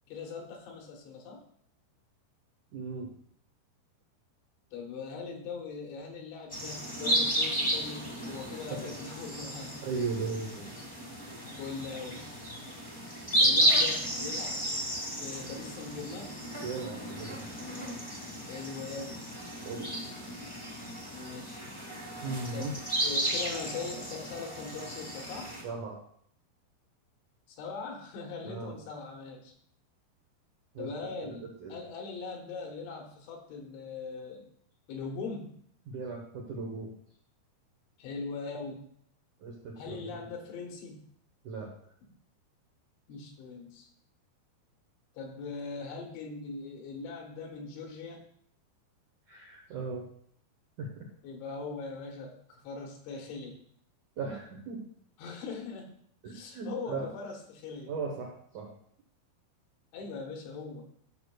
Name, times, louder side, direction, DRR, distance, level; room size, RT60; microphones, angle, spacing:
voice 1, 0.1-1.4 4.7-9.8 10.3-10.4 11.6-12.2 13.4-14.6 15.1-16.4 18.4-19.2 21.1-21.6 22.5-25.5 27.6-29.5 30.8-34.5 34.9-35.6 38.0-38.8 39.8-41.1 42.0-42.1 43.1-43.9 45.2-48.2 51.2-53.6 55.2-55.9 56.3-57.9 59.9-60.8, left 4 dB, 85° left, 2 dB, 3.6 m, -41 dB
voice 2, 2.7-3.1 8.7-9.0 9.8-10.7 16.6-17.5 19.6-19.9 22.2-22.8 25.6-26.0 28.4-28.7 30.7-31.8 35.9-36.9 39.4-40.3 41.4-41.7 49.3-50.1 50.8-51.1 54.2-54.8 56.2-57.1 57.9-58.7, right 4 dB, 75° right, -1 dB, 1.8 m, -37 dB
sound 1, 6.5-25.6, right 1 dB, 5° left, 0.8 m, -33 dB
13.0 x 6.4 x 2.4 m, 0.65 s
omnidirectional pair, 5.2 m